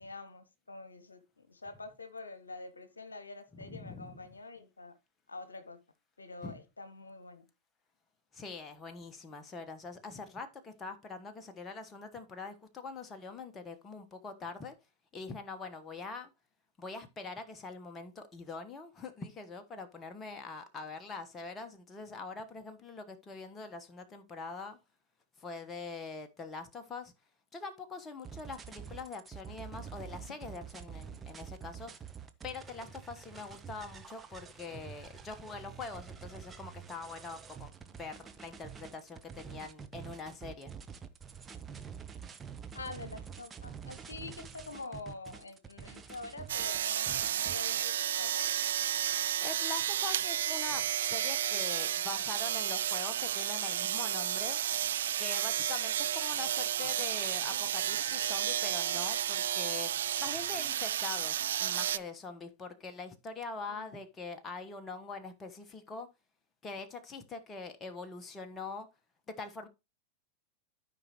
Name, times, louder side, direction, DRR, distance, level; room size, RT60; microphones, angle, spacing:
voice 1, 0.0-4.9 5.3-5.8 6.2-7.4 42.7-48.5 63.7-64.0, left 3 dB, 75° left, 1.0 m, -46 dB
voice 2, 3.5-4.2 6.4-6.6 8.3-14.8 15.1-16.3 16.8-24.8 25.4-27.1 27.5-31.9 32.4-40.7 49.1-54.6 55.2-59.9 60.2-66.1 66.6-68.9 69.3-69.7, left 4 dB, 20° left, 1.2 m, -43 dB
sound 1, 28.2-47.6, right 7 dB, 20° right, 0.9 m, -47 dB
sound 2, 46.5-62.0, right 10 dB, 60° right, 0.4 m, -32 dB
13.0 x 5.2 x 3.0 m
figure-of-eight pair, 90°, 0 cm